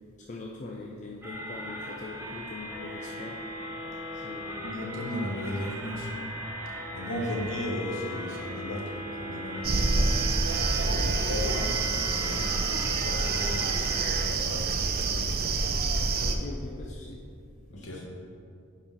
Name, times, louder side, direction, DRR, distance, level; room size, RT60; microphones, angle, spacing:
voice 1, 0.3-3.4 4.1-4.8 7.1-7.6 10.8-11.2 16.2-17.2 17.8-18.0, left 3 dB, 35° left, -1 dB, 0.4 m, -42 dB
sound 1, 1.2-14.2, left 1 dB, 10° right, 1.0 m, -38 dB
voice 2, 4.6-6.1 6.9-10.1 10.5-15.4 17.7-18.0, left 1 dB, 60° left, -1 dB, 1.2 m, -36 dB
sound 2, 9.6-16.4, right 3 dB, 45° right, 0.5 m, -27 dB
9.6 x 4.4 x 3.7 m, 2.5 s
head